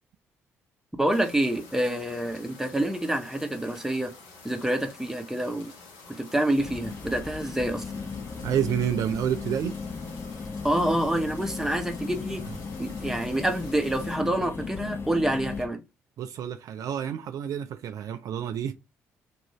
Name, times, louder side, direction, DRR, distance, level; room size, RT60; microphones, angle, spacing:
voice 1, 1.0-4.1 4.4-5.7 6.2-7.8 10.6-12.4 12.8-15.8, right 1 dB, 5° right, 0.7 m, -27 dB
sound 1, 1.1-14.2, left 3 dB, 75° left, 0.8 m, -49 dB
sound 2, 6.6-15.7, left 5 dB, 35° left, 0.7 m, -36 dB
voice 2, 8.4-9.8 16.2-18.7, right 9 dB, 55° right, 0.3 m, -29 dB
2.4 x 2.3 x 3.0 m
hypercardioid pair, 45°, 7 cm